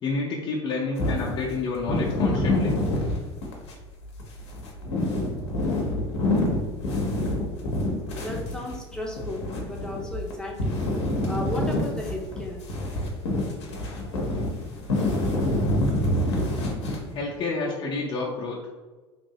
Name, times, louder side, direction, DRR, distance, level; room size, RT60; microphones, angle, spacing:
voice 1, 0.0-2.8 17.1-18.6, left 3 dB, 35° left, -3 dB, 0.6 m, -29 dB
sound 1, 1.0-3.8 4.2-10.3 10.6-17.2, left 1 dB, 75° left, 0.7 m, -26 dB
voice 2, 8.1-10.8 11.3-12.6, left 1 dB, 5° left, -1 dB, 0.7 m, -34 dB
3.0 x 2.6 x 2.7 m, 1.3 s
figure-of-eight pair, 75°, 15 cm